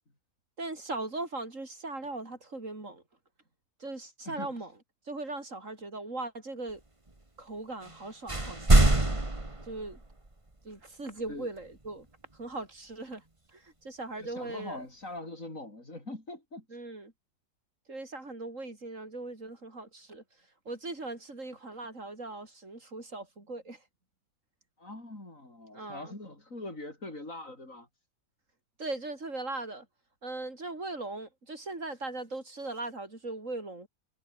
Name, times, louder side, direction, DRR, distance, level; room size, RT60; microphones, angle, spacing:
voice 1, 0.6-3.0 3.8-4.7 5.1-6.8 7.4-9.1 9.6-10.0 10.6-12.1 12.4-13.2 13.5-14.8 16.7-17.1 17.9-20.2 20.6-23.8 25.7-26.1 28.8-29.9 30.2-33.9, right 2 dB, 65° right, 4.7 m, -39 dB
sound 1, 7.8-8.0 8.3-10.3, right 2 dB, 20° right, 2.5 m, -24 dB
voice 2, 14.2-16.7 24.8-27.9, left 2 dB, 65° left, 7.0 m, -42 dB
omnidirectional pair, 1.5 m